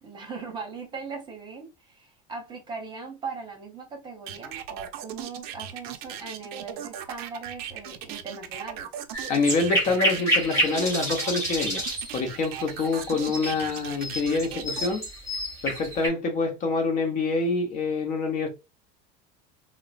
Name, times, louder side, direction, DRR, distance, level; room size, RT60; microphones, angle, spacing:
voice 1, 0.0-8.9, right 4 dB, 20° right, 0.8 m, -39 dB
sound 1, 4.3-14.9, right 10 dB, 50° right, 0.5 m, -38 dB
sound 2, 9.1-16.1, equal, 15° left, 1.7 m, -29 dB
voice 2, 9.3-11.8 12.1-15.1 15.6-18.5, left 3 dB, 40° left, 0.8 m, -26 dB
3.8 x 2.0 x 2.3 m
cardioid pair, 145°, 21 cm